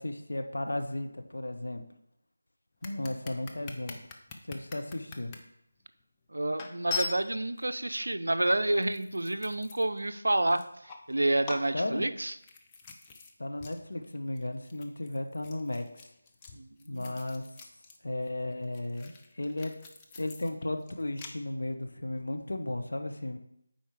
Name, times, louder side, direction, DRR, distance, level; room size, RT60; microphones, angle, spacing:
voice 1, 0.0-1.8 2.8-4.0 4.5-5.3 11.7-12.0 13.4-15.9 16.9-17.4 18.0-19.7 20.2-23.4, left 1 dB, 70° left, 5 dB, 0.9 m, -34 dB
sound 1, 2.8-5.4 6.0-6.1 6.6-7.7 8.4-10.1 10.4-11.1 11.4-13.3 13.6-13.8 14.0-18.0 18.2-21.3, left 4 dB, 15° left, 0.5 m, -42 dB
voice 2, 6.3-10.6 11.1-12.3 16.5-17.2, right 1 dB, 70° right, 11 dB, 0.5 m, -29 dB
9.2 x 4.4 x 3.4 m, 0.75 s
figure-of-eight pair, 160°, 0 cm